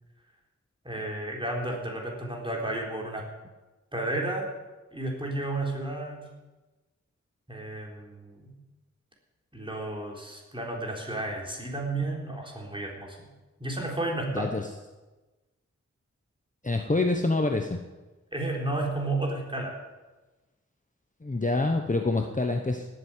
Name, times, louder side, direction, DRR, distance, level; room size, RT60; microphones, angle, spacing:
voice 1, 0.8-3.3 3.9-4.5 4.9-6.3 7.5-8.6 9.5-13.3 13.6-14.5 18.3-19.8, right 2 dB, 15° right, -1 dB, 3.7 m, -32 dB
voice 2, 14.3-14.7 16.6-17.8 21.2-22.9, left 2 dB, 25° left, 4 dB, 1.0 m, -26 dB
18.5 x 8.0 x 7.4 m, 1.2 s
wide cardioid pair, 70°, 30 cm